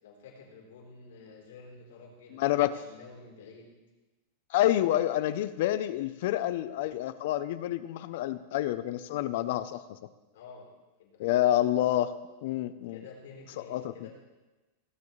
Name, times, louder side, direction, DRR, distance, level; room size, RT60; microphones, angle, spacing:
voice 1, 0.0-3.7 10.3-10.7 11.0-11.5 12.9-14.1, left 4 dB, 80° left, -1 dB, 3.8 m, -50 dB
voice 2, 2.3-2.7 4.5-10.0 11.2-12.1 12.4-13.0 13.7-14.1, left 13 dB, 60° left, 14 dB, 0.6 m, -28 dB
18.0 x 9.7 x 3.2 m, 1.2 s
supercardioid pair, 160°, 0 cm